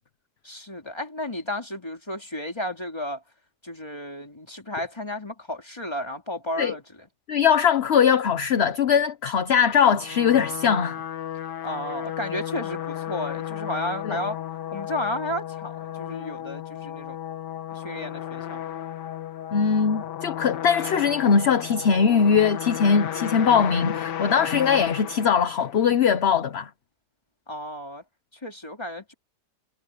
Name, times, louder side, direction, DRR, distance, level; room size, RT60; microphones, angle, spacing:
voice 1, 0.4-3.2 3.6-7.1 11.6-14.4 14.7-17.2 17.7-18.6 27.5-28.0 28.4-29.1, left 1 dB, 15° left, 2.7 m, -33 dB
voice 2, 7.3-11.0 14.0-14.2 19.5-26.7, left 7 dB, 45° left, 1.0 m, -21 dB
sound 1, 9.7-26.0, left 10 dB, 85° left, 1.7 m, -34 dB
omnidirectional pair, 1.8 m